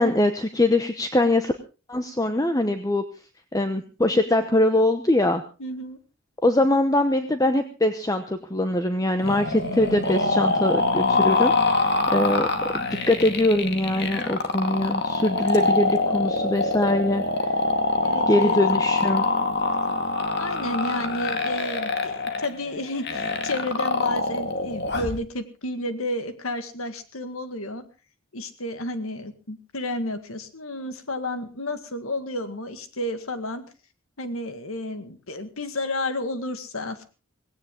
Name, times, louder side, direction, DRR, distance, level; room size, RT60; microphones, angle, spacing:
voice 1, 0.0-1.5 1.9-3.0 3.5-5.4 6.4-12.5 12.7-17.5 18.3-19.2, left 1 dB, 15° left, 8 dB, 0.9 m, -22 dB
voice 2, 5.6-6.0 18.0-18.6 20.4-27.8 28.3-33.6 34.2-37.0, left 1 dB, 80° left, 10 dB, 1.9 m, -31 dB
sound 1, 9.2-25.2, left 3 dB, 50° left, 2.1 m, -24 dB
18.0 x 17.0 x 3.8 m, 0.33 s
head